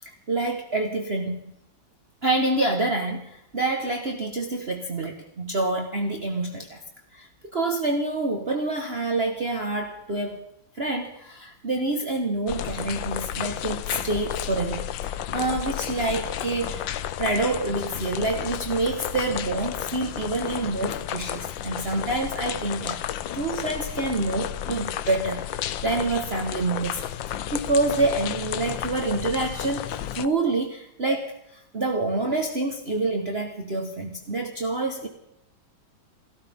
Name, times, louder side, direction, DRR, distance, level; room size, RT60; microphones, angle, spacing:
voice 1, 0.0-1.4 2.2-6.8 7.1-10.4 10.7-16.9 17.2-23.0 23.3-35.1, right 2 dB, 35° right, 3 dB, 1.6 m, -27 dB
sound 1, 12.5-30.3, left 11 dB, 80° left, 1.5 m, -32 dB
28.5 x 13.5 x 3.7 m, 0.79 s
omnidirectional pair, 2.1 m